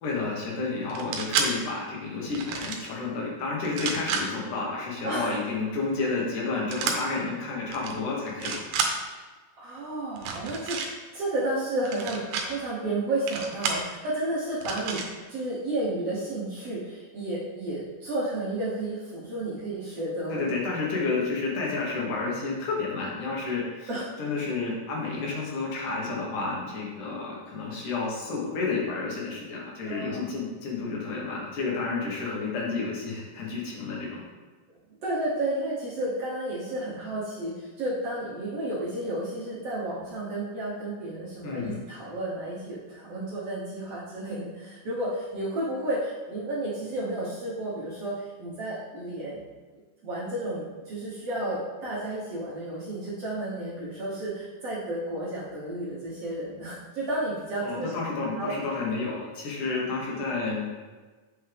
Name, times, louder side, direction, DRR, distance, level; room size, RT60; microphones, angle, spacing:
voice 1, 0.0-8.6 20.3-23.9 24.2-34.2 41.4-41.8 57.6-60.6, left 3 dB, 70° left, -3 dB, 2.7 m, -30 dB
sound 1, 0.9-1.5 2.3-2.9 3.6-4.2 6.7-7.0 7.7-7.9 8.3-8.9 10.2-10.9 11.9-12.5 13.3-13.8 14.6-15.1, right 6 dB, 85° right, 2.5 m, -30 dB
voice 2, 5.0-5.4 9.6-10.8 11.1-15.0 15.3-20.5 23.9-24.1 29.8-30.2 35.0-49.4 49.7-57.9 58.4-58.5, right 1 dB, 60° right, -7 dB, 1.8 m, -32 dB
8.3 x 5.3 x 3.4 m, 1.3 s
omnidirectional pair, 3.9 m